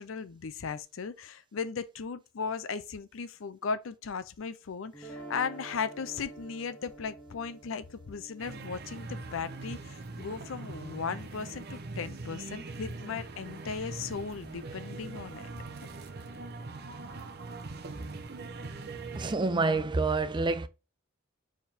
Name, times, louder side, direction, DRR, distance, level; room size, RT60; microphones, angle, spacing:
voice 1, 0.0-15.5, left 5 dB, 70° left, 0.5 m, -37 dB
sound 1, 4.9-11.0, right 2 dB, 5° left, 1.3 m, -49 dB
sound 2, 8.4-19.4, right 3 dB, 55° right, 0.7 m, -42 dB
voice 2, 19.1-20.7, right 3 dB, 25° right, 0.4 m, -27 dB
4.4 x 3.6 x 2.7 m
head